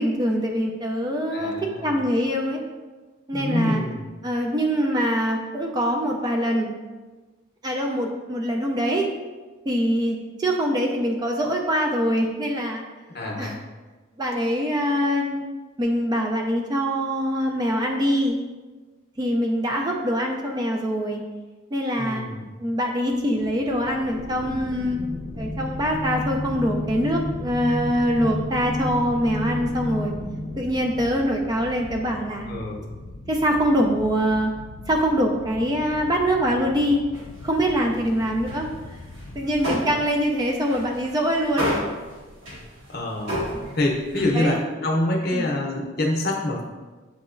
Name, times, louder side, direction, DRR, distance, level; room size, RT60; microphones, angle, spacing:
voice 1, 0.0-2.6 3.3-3.8 4.2-6.7 7.6-9.1 9.7-12.8 13.4-13.6 14.2-15.4 15.8-18.4 19.2-21.2 21.7-22.3 22.6-25.0 25.4-30.1 30.6-32.5 33.3-34.5 34.9-37.0 37.4-39.0 39.4-41.9 44.3-44.6 45.3-45.5, equal, 20° right, 1 dB, 0.3 m, -24 dB
voice 2, 1.3-2.0 3.3-4.0 13.1-13.6 22.0-22.5 32.5-32.9 42.9-43.4 43.7-46.6, left 1 dB, 50° left, 0 dB, 0.7 m, -26 dB
sound 1, 23.1-39.6, left 2 dB, 90° left, 0.5 m, -42 dB
sound 2, 23.9-32.1, left 1 dB, 35° right, 0.9 m, -32 dB
sound 3, 37.1-38.1 38.4-44.5, equal, 70° right, 1.3 m, -32 dB
7.1 x 2.9 x 2.5 m, 1.3 s
head